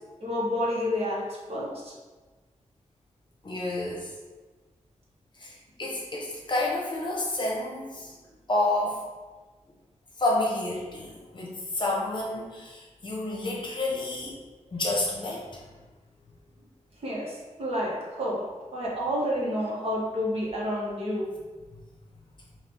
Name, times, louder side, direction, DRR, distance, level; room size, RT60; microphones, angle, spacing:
voice 1, 0.2-1.9 17.0-18.4 18.7-21.3, equal, 55° right, -5 dB, 1.1 m, -29 dB
voice 2, 3.4-4.1 5.4-8.2 8.5-9.0 10.2-14.4 14.7-15.6, left 2 dB, 40° left, -3 dB, 0.9 m, -29 dB
4.4 x 2.4 x 3.5 m, 1.3 s
wide cardioid pair, 130°, 13 cm